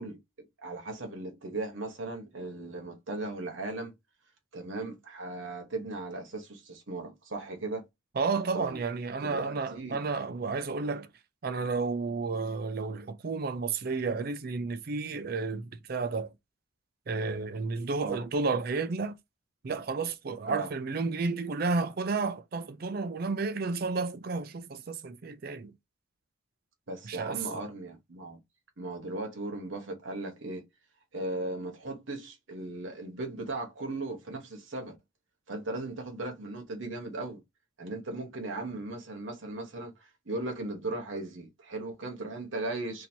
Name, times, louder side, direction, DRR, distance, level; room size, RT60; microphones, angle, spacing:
voice 1, 0.0-3.9 4.5-7.9 8.5-8.8 9.2-10.0 18.0-18.2 20.5-20.7 26.9-28.4 28.8-30.6 31.1-35.0 35.5-37.4 37.8-39.9 40.2-43.1, right 2 dB, 70° right, 1.1 m, -37 dB
voice 2, 8.2-11.1 11.4-16.3 17.1-19.1 19.6-25.7 27.0-27.4, right 4 dB, 45° right, 0.4 m, -32 dB
2.8 x 2.7 x 4.3 m
head